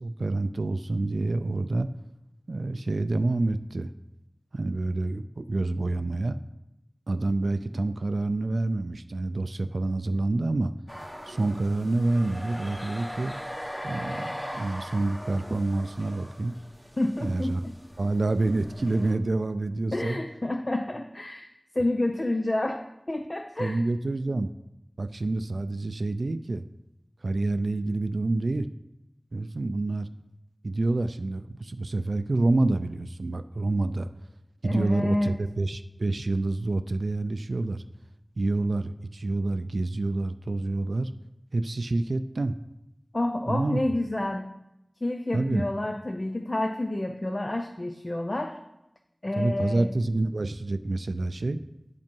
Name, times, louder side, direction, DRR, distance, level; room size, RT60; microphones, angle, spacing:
voice 1, 0.0-1.9 2.5-3.9 4.5-6.4 7.1-10.7 11.3-13.4 13.8-16.5 17.2-17.6 18.0-20.2 23.6-24.5 25.0-26.6 27.2-28.7 29.3-30.1 30.6-34.1 34.6-37.8 38.4-41.1 41.5-42.5 43.5-43.8 45.3-45.7 49.4-51.6, right 2 dB, 90° right, 10 dB, 0.3 m, -27 dB
sound 1, 10.9-19.1, equal, 10° left, 1.6 m, -40 dB
voice 2, 17.0-17.8 19.9-21.5 21.7-22.8 23.1-23.8 34.6-35.4 43.1-44.5 45.0-48.6 49.2-49.9, left 1 dB, 45° left, 5 dB, 0.5 m, -29 dB
8.4 x 5.2 x 5.3 m, 0.89 s
wide cardioid pair, 45°, 0 cm